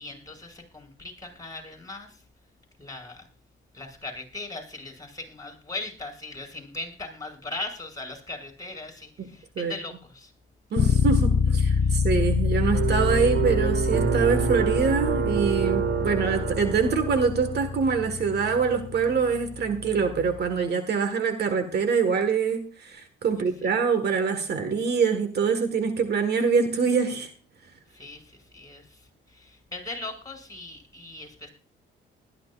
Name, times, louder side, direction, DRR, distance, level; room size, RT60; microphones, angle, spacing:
voice 1, 0.0-2.2 2.8-3.3 3.7-10.3 11.8-12.0 23.3-23.7 27.9-31.5, left 2 dB, 20° left, 4 dB, 6.1 m, -39 dB
voice 2, 10.7-27.3, right 5 dB, 55° right, 8 dB, 1.7 m, -24 dB
sound 1, 10.8-20.5, left 5 dB, 45° left, 0.7 m, -26 dB
sound 2, 12.7-17.9, right 9 dB, 85° right, 1.4 m, -28 dB
20.0 x 13.0 x 2.5 m, 0.40 s
cardioid pair, 90°, 20 cm